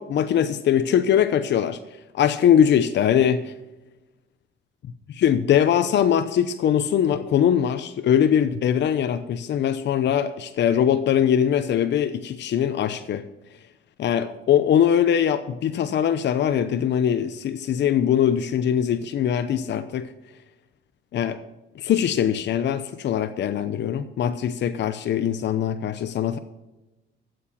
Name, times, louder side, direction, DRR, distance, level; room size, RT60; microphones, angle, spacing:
voice 1, 0.0-1.8 2.1-3.5 5.2-13.2 14.0-20.1 21.1-21.4 21.8-26.4, left 9 dB, 60° left, 10 dB, 0.8 m, -21 dB
12.5 x 7.8 x 6.3 m, 1.0 s
cardioid pair, 90°, 20 cm